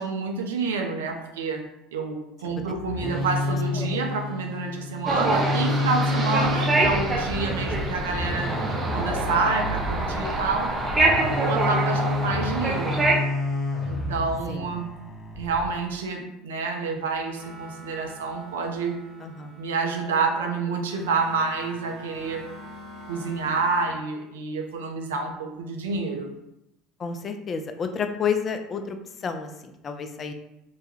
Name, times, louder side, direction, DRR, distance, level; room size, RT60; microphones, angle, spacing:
voice 1, 0.0-1.6 1.9-8.6 8.9-10.7 11.4-13.0 13.9-14.9 15.4-19.0 19.6-22.4 23.1-26.3, right 4 dB, 75° right, 2 dB, 0.4 m, -28 dB
sound 1, 2.6-15.7, left 2 dB, 15° left, 0.8 m, -29 dB
sound 2, 5.0-13.1, right 2 dB, 20° right, 0.6 m, -26 dB
sound 3, 17.3-23.8, equal, 65° left, 1.2 m, -45 dB
voice 2, 19.2-19.5 27.0-29.0 29.2-30.3, left 6 dB, 35° left, 6 dB, 0.3 m, -30 dB
2.2 x 2.1 x 3.0 m, 0.86 s
figure-of-eight pair, 70°, 0 cm